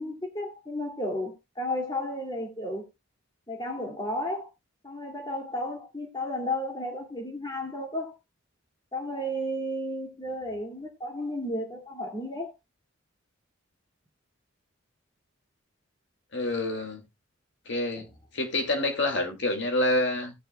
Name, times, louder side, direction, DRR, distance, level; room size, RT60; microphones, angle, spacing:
voice 1, 0.0-2.9 3.5-4.5 4.8-8.1 8.9-12.5 18.0-18.1, left 1 dB, 20° left, 2.4 m, -33 dB
voice 2, 16.3-17.0 17.7-18.1 18.3-20.3, left 1 dB, 60° left, 2.2 m, -27 dB
17.5 x 6.8 x 2.2 m
head